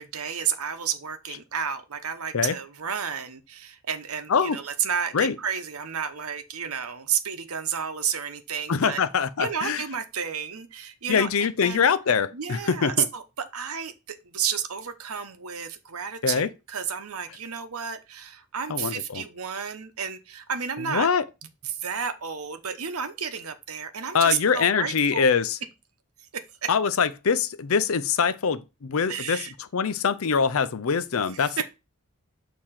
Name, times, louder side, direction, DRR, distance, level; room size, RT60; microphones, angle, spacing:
voice 1, 0.0-9.0 9.4-11.8 12.3-21.1 21.6-25.3 26.3-26.7 29.1-29.5 31.3-31.6, right 7 dB, 85° right, 0.9 m, -31 dB
voice 2, 8.7-9.8 11.1-13.1 16.2-16.5 18.7-19.2 20.9-21.2 24.1-25.6 26.7-29.4 29.7-31.6, left 6 dB, 70° left, 0.5 m, -23 dB
6.7 x 2.9 x 5.7 m
head